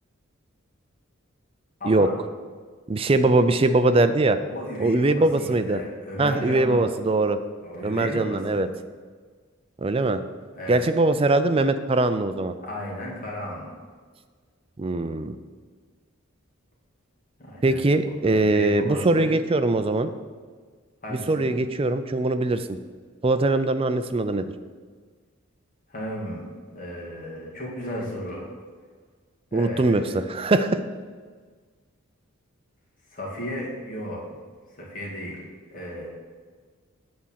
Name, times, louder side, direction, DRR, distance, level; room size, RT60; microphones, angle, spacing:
voice 1, 1.8-2.1 4.5-6.9 7.6-8.6 10.5-10.8 12.6-13.7 17.4-17.8 18.2-19.3 21.0-21.5 25.9-26.5 26.7-28.5 29.5-30.3 33.1-34.2 34.8-35.5 35.7-36.1, equal, 40° left, -4 dB, 2.2 m, -34 dB
voice 2, 2.9-4.4 4.8-5.8 6.2-7.4 7.8-8.7 9.8-10.2 10.7-12.5 14.8-15.3 17.6-20.1 21.1-22.7 23.2-24.5 29.5-30.0 30.3-30.8, right 2 dB, 25° right, 10 dB, 0.4 m, -21 dB
8.7 x 4.2 x 7.3 m, 1.5 s
head